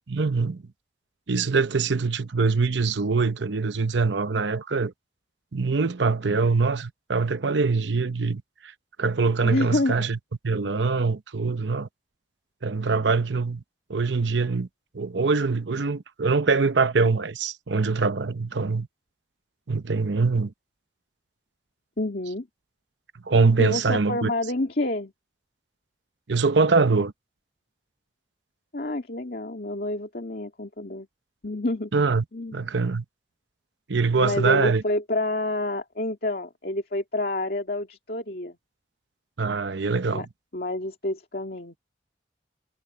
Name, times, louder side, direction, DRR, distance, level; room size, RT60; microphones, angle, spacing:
voice 1, 0.1-0.6 1.3-4.9 5.5-8.7 9.0-10.2 10.4-11.9 12.6-13.6 13.9-14.7 14.9-18.9 19.7-20.5 23.2-24.3 26.3-27.1 31.9-32.2 32.5-33.0 33.9-34.8 39.4-40.3, right 4 dB, 85° right, 0.8 m, -23 dB
voice 2, 9.4-10.1 22.0-22.5 23.6-25.1 28.7-31.1 31.4-31.9 32.3-32.7 34.2-38.6 40.1-40.3 40.5-41.8, left 1 dB, 55° left, 2.3 m, -28 dB
head